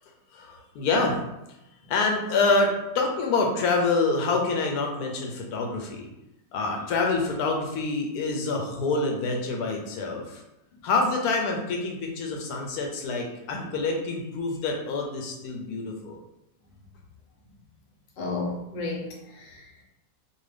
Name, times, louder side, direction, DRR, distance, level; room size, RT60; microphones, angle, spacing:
voice 1, 0.3-1.2 1.9-6.1 6.5-10.4 10.8-16.2, left 3 dB, 85° left, 1 dB, 1.1 m, -26 dB
voice 2, 18.2-19.8, left 3 dB, 50° left, -3 dB, 0.7 m, -33 dB
2.7 x 2.5 x 3.2 m, 0.89 s
omnidirectional pair, 1.6 m